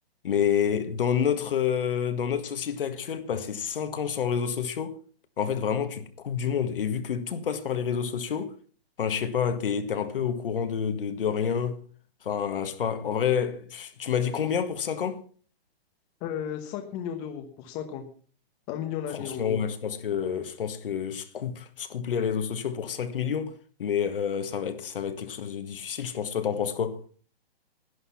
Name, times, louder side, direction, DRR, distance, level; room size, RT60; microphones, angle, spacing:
voice 1, 0.2-5.0 5.4-8.5 9.0-11.8 12.2-15.2 19.1-23.5 23.8-27.0, left 7 dB, 60° left, 1.8 m, -28 dB
voice 2, 16.2-18.0 18.7-19.6, left 9 dB, 15° left, 1.1 m, -34 dB
11.5 x 10.5 x 5.8 m
hypercardioid pair, 165°, 31 cm